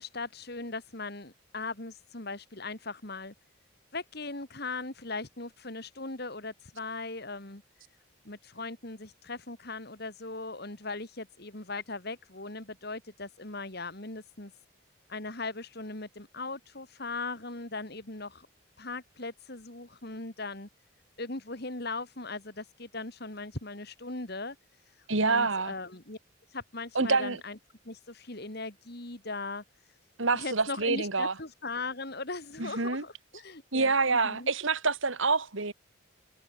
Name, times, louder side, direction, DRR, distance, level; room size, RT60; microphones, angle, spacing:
voice 1, 0.0-3.3 3.9-7.6 8.2-14.5 15.1-18.5 18.8-20.7 21.2-24.6 25.2-26.2 26.5-27.6 27.8-29.6 30.3-34.5, left 3 dB, 50° left, 2.7 m, -39 dB
voice 2, 25.1-25.7 26.9-27.4 30.2-31.3 32.6-33.0 33.7-35.7, right 3 dB, 70° right, 2.5 m, -27 dB
head